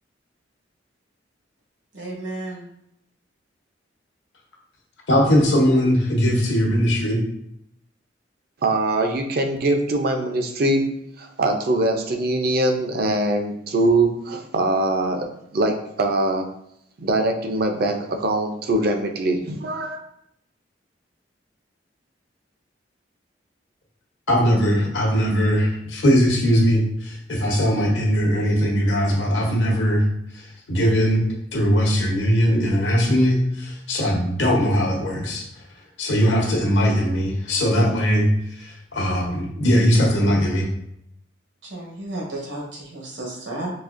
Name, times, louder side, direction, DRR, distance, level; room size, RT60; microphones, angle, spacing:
voice 1, 1.9-2.7 41.6-43.7, right 2 dB, 75° right, -2 dB, 1.1 m, -33 dB
voice 2, 5.1-7.2 24.3-30.0 30.7-31.2 31.5-35.4 36.0-38.3 38.6-40.7, equal, 80° left, -1 dB, 0.9 m, -20 dB
voice 3, 8.6-10.9 11.2-15.3 15.5-16.5 17.0-20.0, right 2 dB, 55° right, 4 dB, 0.5 m, -22 dB
4.0 x 2.8 x 2.5 m, 0.75 s
head